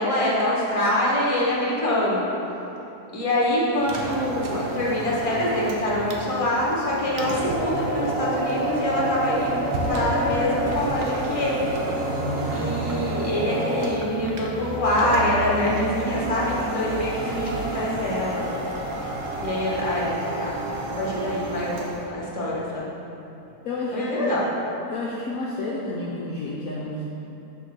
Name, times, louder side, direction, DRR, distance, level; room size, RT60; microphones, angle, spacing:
voice 1, 0.0-2.3 3.1-9.6 9.9-11.6 12.1-12.2 12.5-18.5 19.4-20.1 20.4-20.5 21.0-23.0 23.9-24.5, left 1 dB, 20° left, -6 dB, 1.3 m, -25 dB
sound 1, 3.8-22.0, right 1 dB, 60° right, 1.0 m, -29 dB
voice 2, 12.1-12.6 23.6-24.3 24.9-27.1, left 2 dB, 65° left, -4 dB, 1.0 m, -31 dB
6.7 x 3.6 x 6.1 m, 2.8 s
omnidirectional pair, 1.7 m